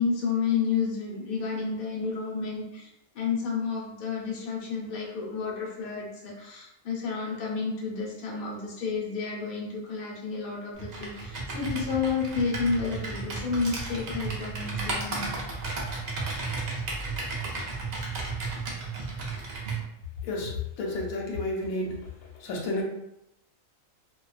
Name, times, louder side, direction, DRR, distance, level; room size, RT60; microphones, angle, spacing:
voice 1, 0.0-2.9 3.1-15.4, left 5 dB, 50° left, -3 dB, 0.7 m, -30 dB
Computer keyboard, 10.8-19.8, right 3 dB, 70° right, 0.4 m, -33 dB
voice 2, 20.2-22.1 22.3-22.8, left 2 dB, 85° left, -1 dB, 1.0 m, -31 dB
2.3 x 2.3 x 2.3 m, 0.83 s
omnidirectional pair, 1.4 m